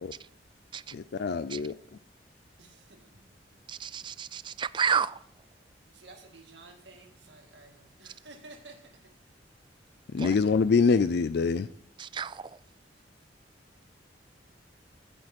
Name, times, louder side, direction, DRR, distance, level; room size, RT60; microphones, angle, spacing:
voice 1, 0.9-1.7 10.1-11.7, left 5 dB, 60° left, 0.4 m, -25 dB
voice 2, 2.6-3.1 5.9-8.8, right 3 dB, 70° right, 1.9 m, -52 dB
voice 3, 3.7-5.2 10.2-10.3 12.0-12.4, right 6 dB, 25° right, 0.3 m, -30 dB
15.0 x 6.2 x 4.3 m
head